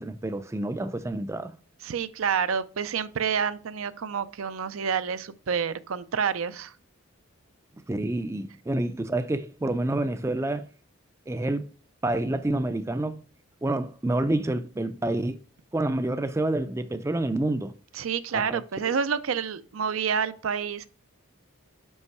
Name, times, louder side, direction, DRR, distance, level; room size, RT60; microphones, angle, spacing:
voice 1, 0.0-1.5 7.9-10.7 11.3-11.7 12.0-13.2 13.6-15.4 15.7-17.7 18.3-18.6, right 1 dB, 15° right, 0.3 m, -28 dB
voice 2, 1.8-6.7 17.9-20.9, right 7 dB, 80° right, 0.5 m, -28 dB
5.4 x 5.2 x 4.7 m
head